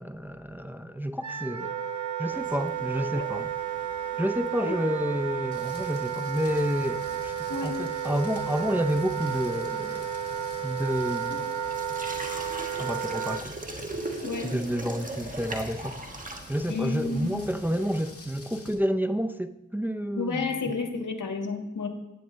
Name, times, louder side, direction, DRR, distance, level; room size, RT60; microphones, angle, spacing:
voice 1, 0.0-1.7 2.2-3.6 4.2-7.3 7.6-10.1 10.6-11.4 12.8-13.6 14.4-16.0 16.5-20.8, equal, 5° right, 0.4 m, -29 dB
Wind instrument woodwind instrument, 1.2-13.4, right 9 dB, 75° right, 0.7 m, -32 dB
sound 1, 2.3-18.1, right 2 dB, 25° right, 1.4 m, -42 dB
Rain, 5.5-18.7, left 2 dB, 50° left, 2.2 m, -47 dB
voice 2, 14.2-14.5 16.7-17.4 20.1-21.9, left 4 dB, 80° left, 1.7 m, -31 dB
18.0 x 9.1 x 3.2 m
wide cardioid pair, 100°, 30 cm